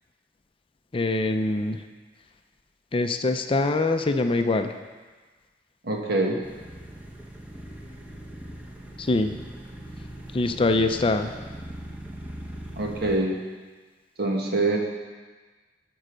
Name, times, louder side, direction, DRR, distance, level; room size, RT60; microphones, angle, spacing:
voice 1, 0.9-1.8 2.9-4.7 9.0-9.3 10.3-11.3, left 2 dB, 30° left, 7 dB, 0.5 m, -23 dB
voice 2, 5.8-6.4 12.8-13.4 14.2-14.8, right 2 dB, 60° right, 0 dB, 1.5 m, -24 dB
sound 1, 6.4-13.2, right 1 dB, 10° right, 1.0 m, -40 dB
12.0 x 5.5 x 6.2 m, 1.4 s
head